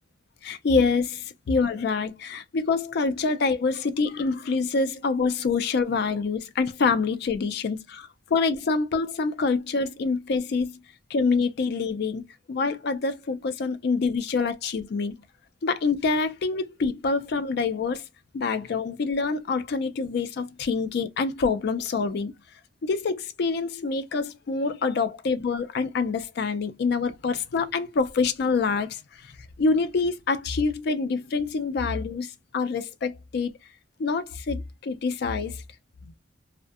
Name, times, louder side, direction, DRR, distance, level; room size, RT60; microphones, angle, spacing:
voice 1, 0.4-10.8 11.1-12.2 12.5-15.1 15.6-18.1 18.3-22.3 22.8-33.5 34.0-35.6 36.0-36.1, left 4 dB, 55° left, 0.4 m, -26 dB
2.5 x 2.1 x 2.3 m
head